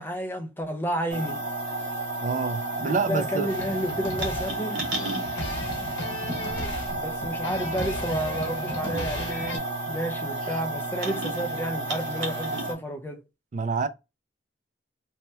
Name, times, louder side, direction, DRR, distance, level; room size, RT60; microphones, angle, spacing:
voice 1, 0.0-1.4 2.8-4.9 7.0-13.2, equal, 10° left, 0.5 m, -31 dB
sound 1, 1.1-12.7, right 2 dB, 80° right, 0.9 m, -31 dB
voice 2, 2.2-3.5 13.5-13.9, right 4 dB, 40° right, 0.3 m, -27 dB
sound 2, 3.5-9.6, left 1 dB, 90° left, 0.8 m, -35 dB
2.8 x 2.1 x 3.2 m
head